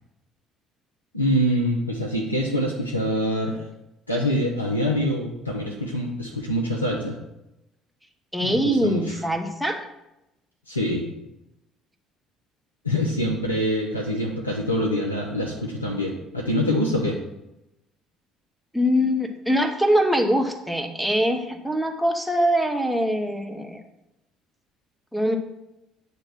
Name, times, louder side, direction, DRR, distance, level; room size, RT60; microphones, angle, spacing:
voice 1, 1.1-3.7 4.1-7.2 8.4-9.2 10.7-11.1 12.8-17.2, equal, 85° left, -1 dB, 0.6 m, -25 dB
voice 2, 8.3-9.9 18.7-23.8 25.1-25.4, equal, ahead, 5 dB, 1.0 m, -23 dB
8.8 x 3.0 x 5.9 m, 0.91 s
figure-of-eight pair, 55°, 0 cm